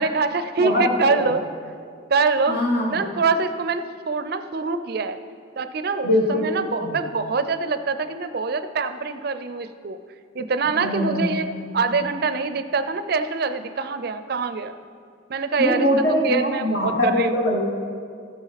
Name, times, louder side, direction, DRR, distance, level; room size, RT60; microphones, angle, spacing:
voice 1, 0.0-1.5 2.1-2.6 2.9-5.2 5.6-10.0 10.3-11.5 11.7-14.7 15.3-15.9 16.2-17.4, right 4 dB, 50° right, 11 dB, 0.4 m, -24 dB
voice 2, 0.6-1.3 2.5-3.0 6.0-7.0 10.8-11.6 15.6-17.6, left 1 dB, 60° left, -2 dB, 1.2 m, -23 dB
14.5 x 7.0 x 4.1 m, 2.3 s
head